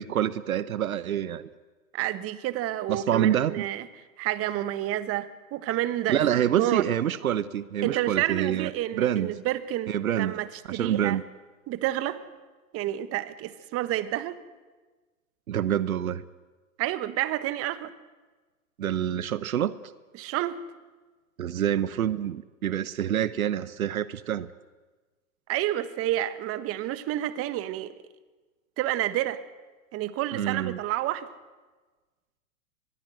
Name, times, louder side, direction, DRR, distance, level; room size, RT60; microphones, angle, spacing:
voice 1, 0.0-1.5 2.9-3.6 6.1-9.3 9.9-10.4 10.7-11.2 15.5-16.2 18.8-19.7 21.4-24.5 30.3-30.8, right 10 dB, 80° right, 16 dB, 1.0 m, -27 dB
voice 2, 1.9-3.9 4.2-6.2 6.6-6.8 7.8-11.2 11.7-12.2 12.7-14.4 16.8-17.9 20.1-20.6 25.5-27.9 28.8-29.4 29.9-31.3, right 14 dB, 35° right, 13 dB, 1.4 m, -29 dB
24.0 x 21.5 x 7.8 m, 1.3 s
hypercardioid pair, 110°, 42 cm